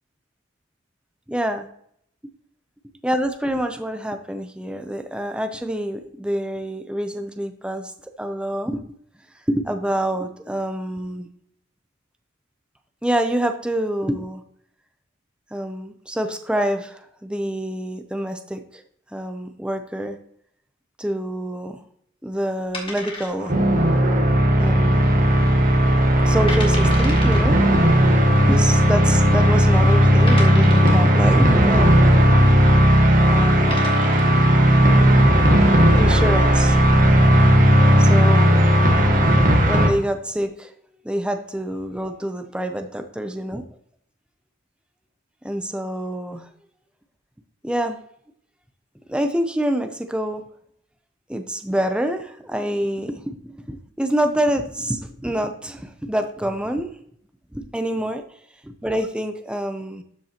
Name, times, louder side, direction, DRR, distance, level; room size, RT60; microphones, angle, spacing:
voice 1, 1.3-1.7 3.0-7.9 8.2-8.9 9.5-11.3 13.0-14.4 15.5-18.8 19.1-20.2 21.0-21.8 22.2-23.5 24.6-25.2 26.3-27.6 28.5-32.6 33.2-33.9 35.9-36.8 38.0-38.7 39.7-40.7 41.0-43.6 45.4-46.5 47.6-48.0 49.1-50.4 51.3-56.9 57.5-58.2 58.6-60.0, right 1 dB, 5° right, 6 dB, 0.6 m, -26 dB
sound 1, 22.7-23.7 24.0-24.1 24.7-25.1 25.5-25.6 26.1-26.2 26.5-27.4 28.5-28.6 29.3-29.4 30.3-31.1 32.9-33.1 33.5-34.4, left 2 dB, 25° left, 1.7 m, -33 dB
sound 2, 23.4-39.9, equal, 40° right, 1.2 m, -15 dB
12.5 x 5.4 x 2.9 m, 0.65 s
head